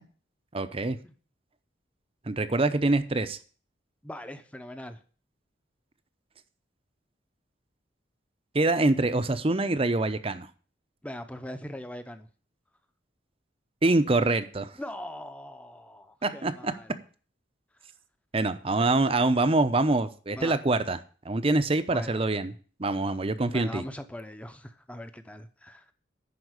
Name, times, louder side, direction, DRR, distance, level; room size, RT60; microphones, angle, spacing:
voice 1, 0.5-1.0 2.3-3.4 8.5-10.5 13.8-14.7 16.2-16.7 18.3-21.0 21.2-22.5 22.8-23.8, right 2 dB, 30° right, 11 dB, 0.7 m, -25 dB
voice 2, 4.0-5.0 11.0-12.3 14.8-17.0 18.8-19.3 20.4-20.6 21.9-22.3 23.5-25.9, left 1 dB, 5° left, 9 dB, 0.8 m, -41 dB
11.0 x 4.7 x 8.0 m, 0.41 s
head